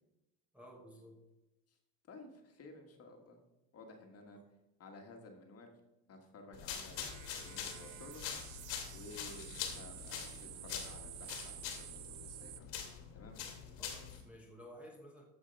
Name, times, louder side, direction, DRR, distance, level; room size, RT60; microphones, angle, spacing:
voice 1, 0.5-1.2 13.8-15.2, equal, 5° right, -2 dB, 1.2 m, -54 dB
voice 2, 2.1-3.4 3.7-4.4 4.8-5.8 6.1-8.2 8.9-12.7 13.1-13.4, left 2 dB, 30° left, 4 dB, 1.7 m, -54 dB
sound 1, 6.5-14.2, left 8 dB, 65° left, 2.4 m, -44 dB
sound 2, 6.6-6.7 6.9-12.6, right 15 dB, 75° right, 1.0 m, -51 dB
14.0 x 5.0 x 5.3 m, 0.96 s
cardioid pair, 140°, 48 cm